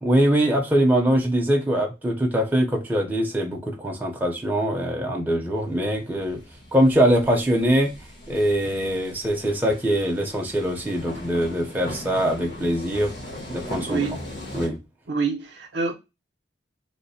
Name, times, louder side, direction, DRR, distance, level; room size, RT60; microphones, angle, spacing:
voice 1, 0.0-6.4 6.7-7.9 8.3-13.1 13.5-14.0 14.5-14.8, right 1 dB, 10° right, 0.6 m, -22 dB
sound 1, 5.5-14.7, left 1 dB, 60° left, 1.3 m, -39 dB
voice 2, 13.9-14.2 15.1-15.9, right 4 dB, 65° right, 0.6 m, -26 dB
3.2 x 2.1 x 4.0 m
head